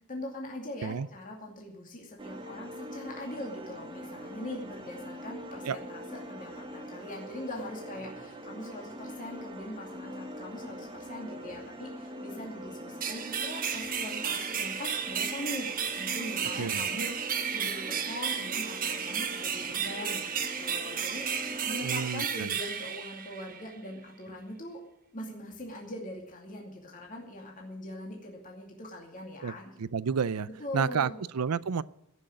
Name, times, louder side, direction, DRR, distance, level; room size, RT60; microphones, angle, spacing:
voice 1, 0.1-15.7 16.0-24.8 25.1-29.8 30.6-31.2, left 1 dB, 35° left, 2.5 m, -41 dB
sound 1, 2.2-22.1, equal, 20° right, 1.7 m, -43 dB
sound 2, 13.0-23.7, right 7 dB, 40° right, 1.2 m, -33 dB
voice 2, 16.6-16.9 21.8-22.6 29.4-29.5 29.8-31.8, right 6 dB, 85° right, 0.5 m, -31 dB
16.5 x 6.4 x 8.8 m
head